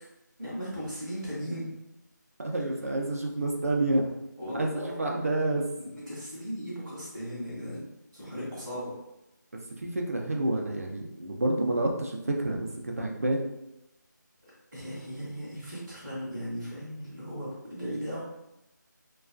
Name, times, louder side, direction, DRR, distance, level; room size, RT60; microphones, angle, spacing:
voice 1, 0.4-1.7 4.4-5.3 5.8-7.9 8.1-8.9 14.7-18.2, equal, 10° right, -16 dB, 0.7 m, -37 dB
voice 2, 2.4-4.0 4.5-5.6 9.8-13.5, right 2 dB, 50° right, 1 dB, 0.4 m, -28 dB
2.3 x 2.3 x 2.4 m, 0.91 s
figure-of-eight pair, 175°, 10 cm